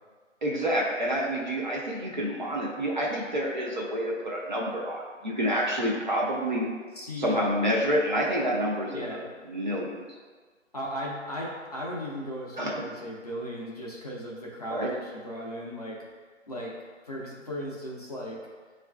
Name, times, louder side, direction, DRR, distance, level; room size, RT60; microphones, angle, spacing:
voice 1, 0.4-6.7 7.2-10.0 12.6-12.8 14.7-14.9, equal, 40° right, -3 dB, 0.5 m, -28 dB
voice 2, 7.0-7.4 8.9-9.2 10.7-16.0 16.5-16.7 17.0-18.4, equal, 30° left, -5 dB, 0.5 m, -36 dB
6.5 x 2.4 x 2.2 m, 1.5 s
figure-of-eight pair, 150°, 38 cm